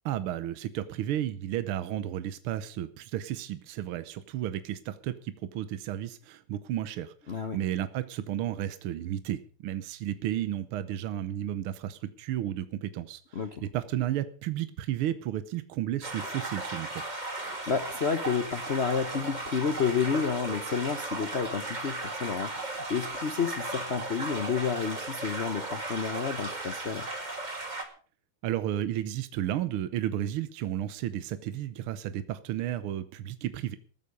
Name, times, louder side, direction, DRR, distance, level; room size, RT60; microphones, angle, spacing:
voice 1, 0.0-17.0 28.4-33.8, right 12 dB, 75° right, 12 dB, 1.7 m, -33 dB
voice 2, 13.3-13.6 17.4-27.1, left 6 dB, 65° left, 10 dB, 0.6 m, -30 dB
sound 1, 16.0-27.8, right 2 dB, 20° right, 2.2 m, -36 dB
15.0 x 13.5 x 5.2 m, 0.41 s
omnidirectional pair, 2.4 m